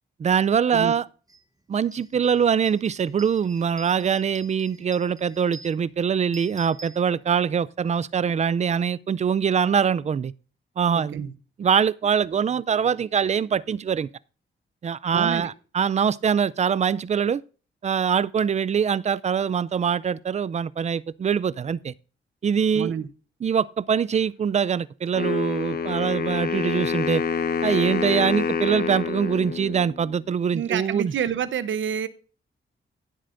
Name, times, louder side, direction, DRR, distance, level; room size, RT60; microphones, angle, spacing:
voice 1, 0.2-1.0 1.7-10.3 10.8-11.2 11.6-14.1 14.8-17.4 17.8-21.9 22.4-22.9 23.4-27.2 27.6-31.1, right 7 dB, 35° right, 0.4 m, -23 dB
sound 1, 1.3-1.4 1.8-7.6, right 2 dB, 20° right, 1.2 m, -48 dB
voice 2, 10.9-11.3 15.1-15.5 22.7-23.1 30.5-32.1, right 8 dB, 75° right, 0.8 m, -28 dB
Wind instrument woodwind instrument, 25.1-30.2, left 5 dB, 50° left, 0.8 m, -27 dB
16.5 x 7.7 x 2.5 m
wide cardioid pair, 135°, 20 cm